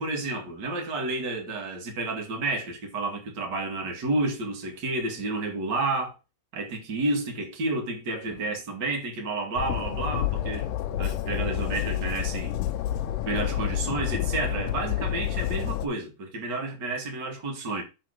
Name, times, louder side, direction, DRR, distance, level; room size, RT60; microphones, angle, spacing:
voice 1, 0.0-6.1 6.5-10.7 11.0-12.5 13.3-17.8, right 2 dB, 35° right, 1.8 m, -30 dB
Train, 9.6-15.9, left 12 dB, 85° left, 1.8 m, -29 dB
7.6 x 3.8 x 6.3 m
omnidirectional pair, 4.7 m